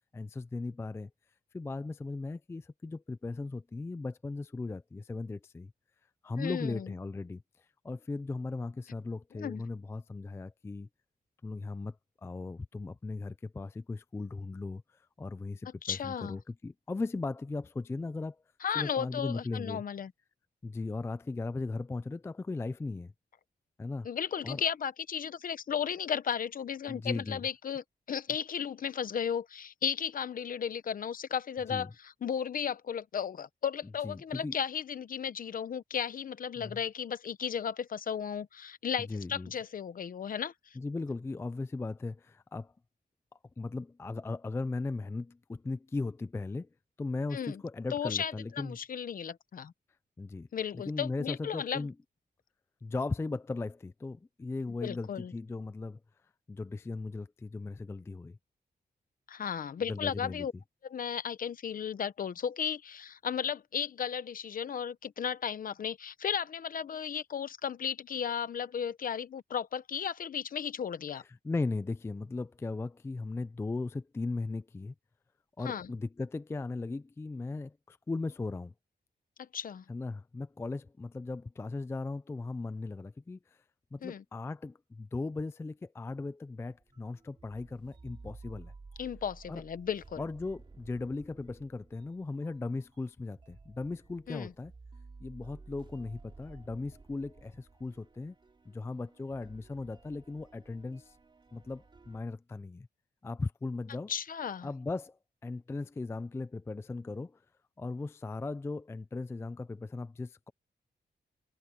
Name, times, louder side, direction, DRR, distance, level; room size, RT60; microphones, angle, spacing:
voice 1, 0.1-1.1 1.5-5.7 6.2-10.9 11.4-12.0 12.2-18.4 18.7-19.8 20.6-23.1 23.8-24.1 24.4-24.6 26.9-27.4 31.7-31.9 34.0-34.6 36.6-36.8 39.1-39.5 40.8-42.7 43.6-46.7 47.0-48.8 50.2-50.5 50.7-51.9 52.8-56.0 56.5-58.4 59.9-60.5 71.4-74.9 75.6-78.7 79.9-83.6 83.9-88.7 89.5-89.6 90.2-94.7 95.2-98.4 98.7-101.2 101.5-102.9 103.2-104.1 104.6-107.4 107.8-110.5, left 3 dB, 15° left, 0.3 m, -37 dB
voice 2, 6.4-6.9 9.3-9.6 15.8-16.4 18.6-20.1 24.0-40.8 47.3-47.6 47.9-49.7 50.5-51.9 54.8-55.3 59.3-60.5 60.8-71.2 75.6-75.9 79.4-79.8 84.0-84.2 89.0-90.2 94.3-94.5 104.1-104.7, left 8 dB, 55° left, 0.9 m, -35 dB
sound 1, 86.7-102.2, right 4 dB, 30° right, 3.0 m, -54 dB
wide cardioid pair, 180°, 17 cm